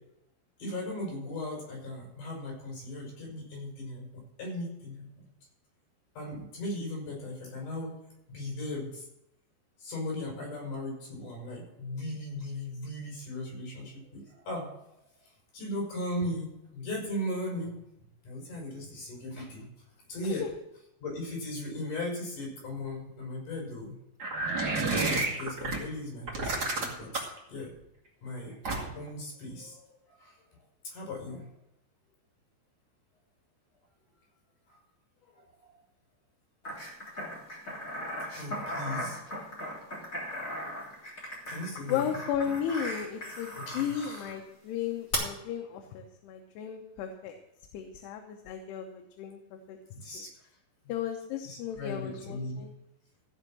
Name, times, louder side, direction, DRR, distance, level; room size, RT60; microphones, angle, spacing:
voice 1, 0.6-5.3 6.1-8.0 8.3-9.0 9.8-14.7 15.5-17.8 18.2-19.7 20.1-20.4 21.0-24.0 24.8-27.7 28.2-28.5 28.9-30.4 30.8-31.5 34.7-34.8 35.3-35.7 38.3-39.2 40.5-40.6 41.5-42.0 43.7-44.3 49.9-50.3 51.4-52.6, left 1 dB, 50° left, -2 dB, 6.5 m, -37 dB
sound 1, 24.2-25.8 26.3-27.4 28.6-29.1, right 3 dB, 35° right, 1.6 m, -30 dB
sound 2, 36.6-44.3 45.1-45.2, left 1 dB, 20° left, 3.2 m, -38 dB
voice 2, 41.9-47.4 47.7-49.8 50.1-50.3 50.9-52.7, left 9 dB, 75° left, 4 dB, 2.9 m, -35 dB
15.0 x 5.7 x 7.5 m, 0.84 s
omnidirectional pair, 5.0 m